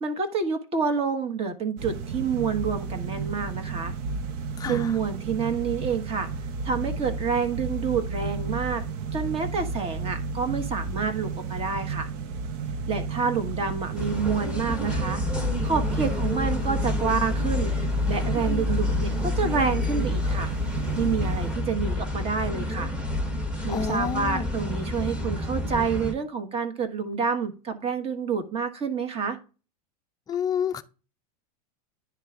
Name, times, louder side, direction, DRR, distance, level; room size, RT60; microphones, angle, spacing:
voice 1, 0.0-3.9 4.7-6.3 6.6-8.8 9.1-12.1 12.9-15.2 15.6-17.7 18.1-20.5 20.9-22.9 23.6-29.4, right 5 dB, 30° right, 1.3 m, -28 dB
sound 1, 1.8-21.5, right 4 dB, 50° right, 0.8 m, -32 dB
voice 2, 4.6-4.9 23.7-24.5 30.3-30.8, left 7 dB, 20° left, 0.5 m, -29 dB
sound 2, 14.0-26.1, left 2 dB, 5° right, 1.2 m, -28 dB
9.9 x 3.5 x 3.6 m
hypercardioid pair, 115°, 21 cm